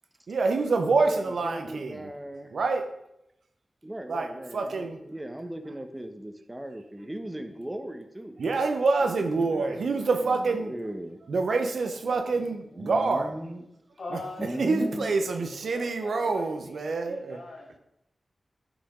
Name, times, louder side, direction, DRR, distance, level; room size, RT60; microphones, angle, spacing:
voice 1, 0.3-2.1 2.5-2.9 4.1-4.3 4.5-5.0 8.4-10.7 11.3-13.3 14.6-17.4, right 3 dB, 80° right, 6 dB, 0.7 m, -26 dB
voice 2, 1.1-2.6 3.8-8.4 9.0-9.8 10.1-11.2 12.7-13.6 14.4-15.1, right 1 dB, 20° right, 7 dB, 1.0 m, -38 dB
voice 3, 14.0-14.7 15.6-17.8, left 2 dB, 75° left, 1 dB, 1.6 m, -42 dB
8.7 x 5.0 x 3.7 m, 0.82 s
cardioid pair, 40°, 0 cm